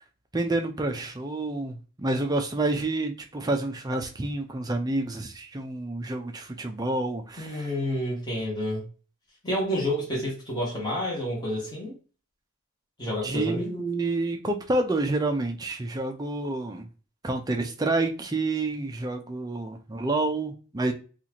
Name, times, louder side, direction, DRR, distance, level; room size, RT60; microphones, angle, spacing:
voice 1, 0.3-7.7 13.2-16.9 17.2-20.9, right 2 dB, 15° right, 0.4 m, -28 dB
voice 2, 7.4-8.8 9.4-12.0 13.0-13.8, equal, 20° left, 1.3 m, -29 dB
4.1 x 2.5 x 2.9 m
head